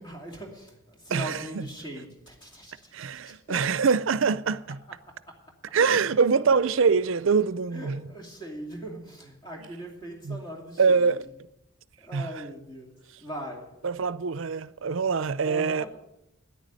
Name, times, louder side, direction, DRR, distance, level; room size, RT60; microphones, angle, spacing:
voice 1, 0.0-3.8 5.1-5.8 6.4-6.7 7.7-11.1 12.0-13.8 15.4-15.9, right 1 dB, 20° left, 2.6 m, -41 dB
voice 2, 1.1-1.6 2.9-4.8 5.7-8.1 10.2-10.4 10.8-11.3 12.1-12.3 13.8-15.8, right 5 dB, 70° right, 0.5 m, -24 dB
10.0 x 9.3 x 8.9 m
head